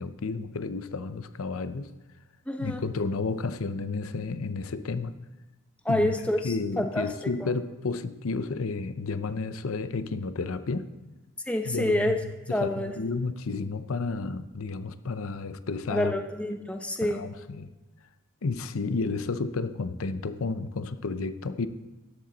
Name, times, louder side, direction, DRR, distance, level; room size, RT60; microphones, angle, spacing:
voice 1, 0.0-1.9 2.6-5.2 5.9-6.1 6.4-10.9 11.6-12.2 12.5-16.1 17.1-17.7 18.4-21.7, left 4 dB, 90° left, 12 dB, 0.6 m, -31 dB
voice 2, 2.5-2.8 5.8-7.1 7.4-7.5 11.5-12.2 12.5-12.9 15.9-17.3, left 1 dB, 5° left, 5 dB, 0.8 m, -28 dB
13.0 x 10.5 x 4.0 m, 1.1 s
head